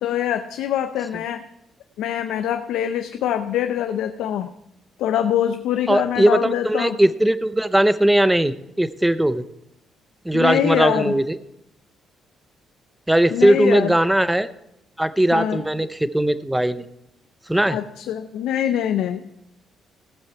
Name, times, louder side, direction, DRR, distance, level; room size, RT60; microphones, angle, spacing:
voice 1, 0.0-1.4 2.0-4.5 5.0-7.0 10.3-11.2 13.3-13.9 15.3-15.6 17.7-19.2, left 10 dB, 85° left, 7 dB, 0.5 m, -24 dB
voice 2, 5.9-9.4 10.2-11.4 13.1-14.5 15.0-16.8 17.5-17.8, right 1 dB, 5° right, 14 dB, 0.7 m, -19 dB
16.5 x 7.5 x 4.6 m, 0.80 s
cardioid pair, 90°, 0 cm